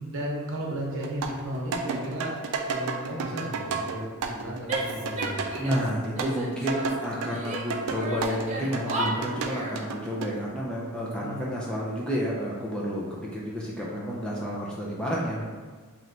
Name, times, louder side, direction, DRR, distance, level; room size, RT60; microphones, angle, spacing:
voice 1, 0.0-5.4 11.2-11.5, equal, 60° right, -2 dB, 0.9 m, -34 dB
sound 1, 1.0-8.4 8.7-10.3, right 4 dB, 85° right, 0.4 m, -32 dB
Female speech woman speaking / Yell, 4.7-5.9 6.1-7.6 7.9-9.8, right 1 dB, 30° right, 0.7 m, -34 dB
voice 2, 5.6-15.5, equal, 5° left, -6 dB, 0.4 m, -30 dB
3.3 x 2.9 x 3.8 m, 1.5 s
head